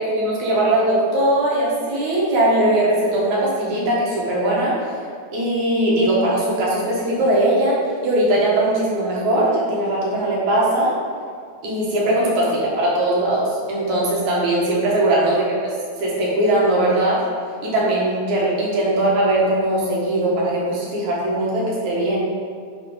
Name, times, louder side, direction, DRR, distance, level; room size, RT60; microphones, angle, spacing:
voice 1, 0.0-4.7 5.3-7.8 8.0-10.9 11.6-15.4 16.0-17.2 17.6-22.2, right 1 dB, 75° right, -5 dB, 2.9 m, -20 dB
10.5 x 4.1 x 3.8 m, 2.1 s
omnidirectional pair, 3.4 m